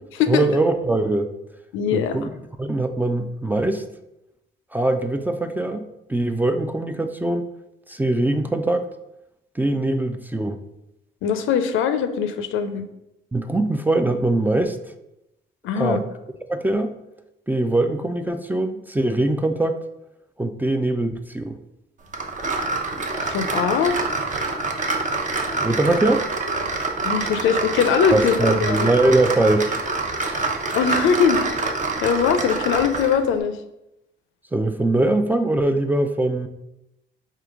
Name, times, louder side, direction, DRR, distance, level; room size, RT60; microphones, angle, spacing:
voice 1, 0.3-1.3 1.9-2.3 2.6-3.8 4.7-7.5 7.9-8.9 9.6-10.6 13.3-14.8 15.8-16.1 16.5-16.9 17.5-19.8 20.4-21.6 25.6-26.3 28.1-29.9 30.2-30.5 34.5-36.5, right 2 dB, 10° right, 8 dB, 0.3 m, -22 dB
voice 2, 1.7-2.2 11.2-12.9 15.6-16.0 23.1-24.0 27.0-28.9 30.7-31.4 32.0-33.6, left 7 dB, 85° left, 9 dB, 0.5 m, -21 dB
sound 1, 22.1-33.2, right 3 dB, 40° right, 0.7 m, -26 dB
3.7 x 2.8 x 4.7 m, 0.88 s
cardioid pair, 90°, 20 cm